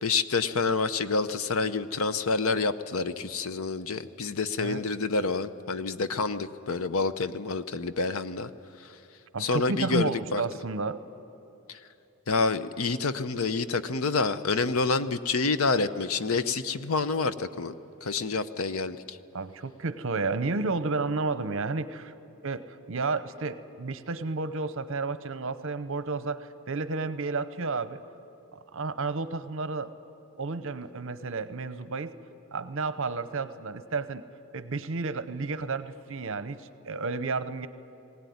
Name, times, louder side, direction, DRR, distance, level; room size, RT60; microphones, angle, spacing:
voice 1, 0.0-8.5 9.4-10.4 11.7-11.8 12.3-17.7 18.0-19.2, left 4 dB, 70° left, 12 dB, 0.7 m, -28 dB
voice 2, 9.3-11.0 19.3-22.1 22.4-28.0 28.5-29.9 30.4-32.1 32.5-34.2 34.5-37.7, right 3 dB, 60° right, 12 dB, 0.8 m, -31 dB
20.0 x 17.5 x 9.4 m, 2.9 s
head